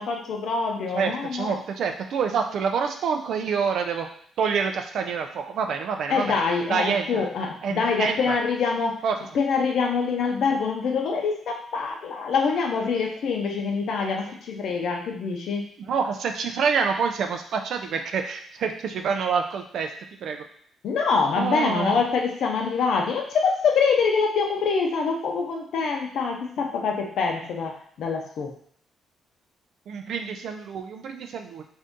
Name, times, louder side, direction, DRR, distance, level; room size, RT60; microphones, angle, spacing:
voice 1, 0.0-1.6 6.1-9.0 9.3-15.7 20.8-28.5, left 5 dB, 70° left, 1 dB, 0.7 m, -25 dB
voice 2, 0.9-4.1 4.4-6.4 6.7-7.3 7.6-8.4 9.0-9.2 15.8-19.9 20.2-20.4 21.4-22.0 29.9-31.6, right 6 dB, 70° right, 5 dB, 0.4 m, -27 dB
2.6 x 2.6 x 3.5 m, 0.62 s
cardioid pair, 90°, 0 cm